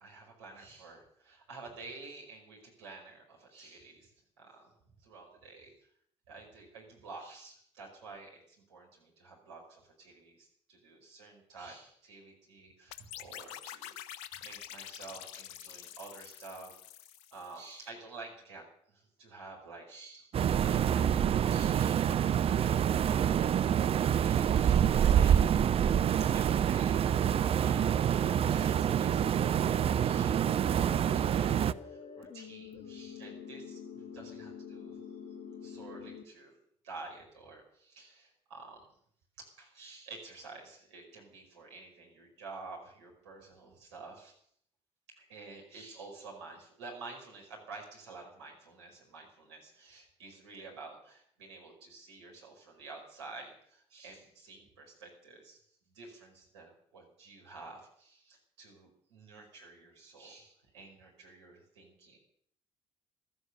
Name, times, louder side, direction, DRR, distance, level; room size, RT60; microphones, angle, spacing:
voice 1, 0.0-5.7 6.3-16.8 17.3-20.4 20.6-25.6 26.3-35.2 35.6-36.6 36.8-38.9 39.4-44.4 45.1-55.6 55.9-62.2, right 3 dB, 75° right, -1 dB, 5.0 m, -50 dB
sound 1, 12.9-17.7, left 11 dB, 70° left, 0.8 m, -47 dB
sound 2, 20.3-31.7, right 9 dB, 40° right, 0.6 m, -27 dB
sound 3, 28.2-36.2, left 6 dB, 40° left, 1.9 m, -47 dB
16.0 x 13.5 x 6.8 m, 0.64 s
figure-of-eight pair, 50°, 15 cm